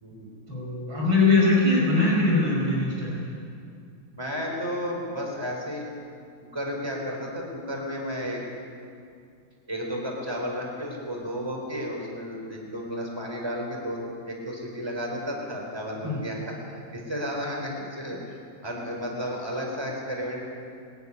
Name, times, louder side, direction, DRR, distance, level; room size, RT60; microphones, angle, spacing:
voice 1, 0.5-3.1 16.0-16.2, left 2 dB, 85° right, -4 dB, 6.3 m, -21 dB
voice 2, 4.1-5.8 6.4-8.4 9.7-18.4 18.6-20.5, equal, 10° right, -1 dB, 4.3 m, -33 dB
21.5 x 14.5 x 9.8 m, 2.3 s
omnidirectional pair, 2.1 m